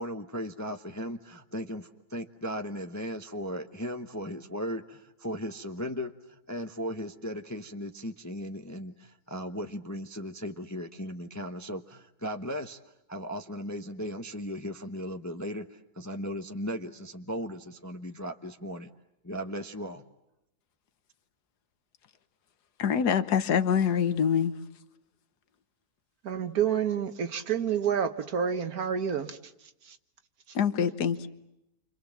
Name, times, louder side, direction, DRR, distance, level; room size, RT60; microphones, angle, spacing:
voice 1, 0.0-12.8 13.1-18.9 19.2-20.0, equal, 15° left, 0.8 m, -37 dB
voice 2, 22.8-24.6 30.5-31.3, left 7 dB, 75° left, 1.7 m, -25 dB
voice 3, 26.2-29.4 29.9-30.0, right 8 dB, 65° right, 1.7 m, -28 dB
29.5 x 26.0 x 7.4 m
omnidirectional pair, 1.7 m